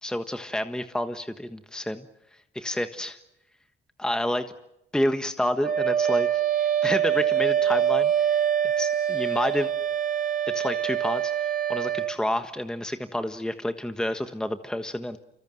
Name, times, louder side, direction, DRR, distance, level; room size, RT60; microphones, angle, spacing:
voice 1, 0.0-2.1 2.5-3.2 4.0-4.5 4.9-6.3 6.6-8.4 8.8-9.7 10.5-15.2, left 1 dB, 5° left, 8 dB, 1.4 m, -29 dB
Wind instrument woodwind instrument, 5.6-12.2, right 9 dB, 45° right, 2.4 m, -24 dB
28.5 x 25.0 x 7.8 m, 0.85 s
cardioid pair, 90°, 20 cm